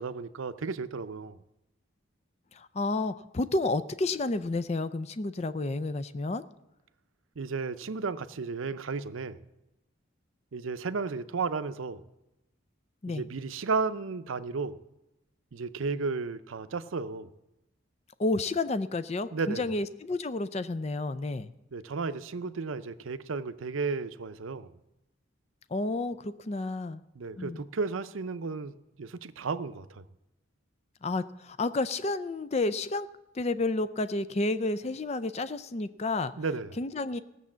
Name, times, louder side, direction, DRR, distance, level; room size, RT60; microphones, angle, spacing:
voice 1, 0.0-1.4 7.4-9.4 10.5-12.0 13.1-14.8 15.5-17.3 19.3-19.7 21.7-24.8 27.1-30.0 36.4-36.8, right 4 dB, 80° right, 12 dB, 0.6 m, -33 dB
voice 2, 2.5-6.4 13.0-13.2 18.2-21.5 25.7-27.0 27.4-27.6 31.0-33.1 33.3-36.3 36.8-37.2, left 2 dB, 30° left, 13 dB, 0.4 m, -30 dB
17.0 x 6.9 x 7.3 m, 0.93 s
head